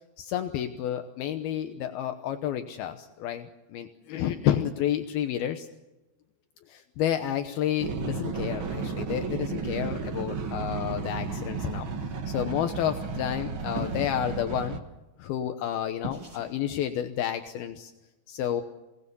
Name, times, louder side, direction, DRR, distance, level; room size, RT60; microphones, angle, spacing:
voice 1, 0.2-5.7 6.7-14.8 15.2-17.9 18.3-18.6, left 10 dB, 75° left, 7 dB, 2.8 m, -30 dB
sound 1, 7.8-14.8, right 5 dB, 50° right, 1.7 m, -33 dB
sound 2, 13.7-14.2 16.0-16.5, equal, 15° right, 6.8 m, -36 dB
27.5 x 18.5 x 7.0 m, 1.1 s
omnidirectional pair, 4.5 m